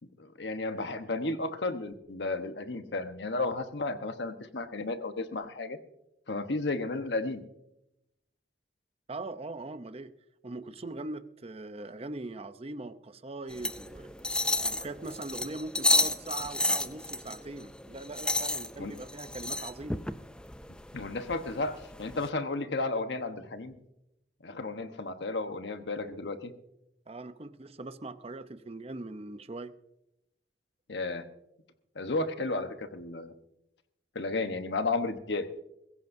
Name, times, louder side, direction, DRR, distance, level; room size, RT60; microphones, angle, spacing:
voice 1, 0.0-5.8 6.3-7.4 18.8-18.9 20.9-23.7 24.4-26.5 30.9-31.3 31.9-33.3 34.1-35.5, left 3 dB, 80° left, 8 dB, 1.1 m, -33 dB
voice 2, 9.1-10.1 10.4-20.0 27.1-29.7, right 2 dB, 35° right, 11 dB, 0.7 m, -41 dB
sound 1, 13.5-22.3, left 2 dB, 5° left, 0.5 m, -32 dB
21.5 x 16.0 x 2.7 m, 0.86 s
head